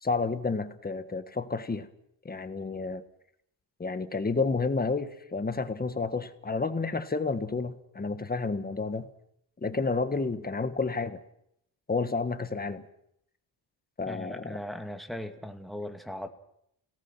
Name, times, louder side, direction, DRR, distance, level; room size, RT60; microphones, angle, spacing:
voice 1, 0.0-1.9 2.2-3.0 3.8-9.1 9.6-11.2 11.9-12.8 14.0-14.6, left 4 dB, 20° left, 10 dB, 1.6 m, -30 dB
voice 2, 14.1-16.3, left 1 dB, ahead, 5 dB, 2.1 m, -38 dB
27.0 x 18.5 x 6.1 m, 0.75 s
cardioid pair, 115°, 44 cm